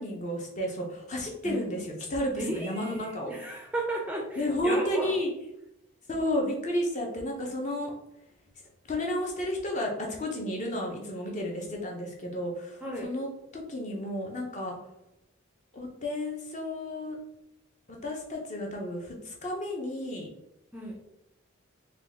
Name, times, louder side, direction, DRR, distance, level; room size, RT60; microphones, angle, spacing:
voice 1, 0.0-3.3 4.4-5.3 6.1-7.9 8.8-13.3 13.5-14.8 15.7-17.2 17.9-20.3, left 1 dB, 35° left, 0 dB, 0.6 m, -32 dB
voice 2, 2.4-5.2 12.8-13.1 20.7-21.0, right 1 dB, 5° right, -1 dB, 0.4 m, -34 dB
3.9 x 2.3 x 3.4 m, 0.86 s
head